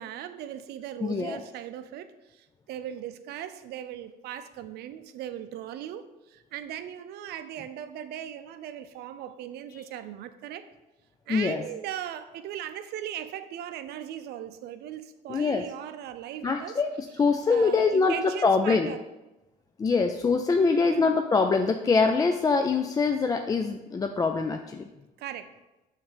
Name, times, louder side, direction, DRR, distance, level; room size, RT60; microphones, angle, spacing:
voice 1, 0.0-10.7 11.3-16.8 17.5-19.0 20.6-21.2 25.2-25.5, right 10 dB, 75° right, 11 dB, 0.5 m, -38 dB
voice 2, 1.0-1.4 11.3-11.6 15.3-15.6 16.4-16.9 17.2-18.9 19.8-24.8, left 4 dB, 20° left, 6 dB, 0.3 m, -24 dB
7.1 x 3.2 x 5.0 m, 1.0 s
cardioid pair, 110°, 17 cm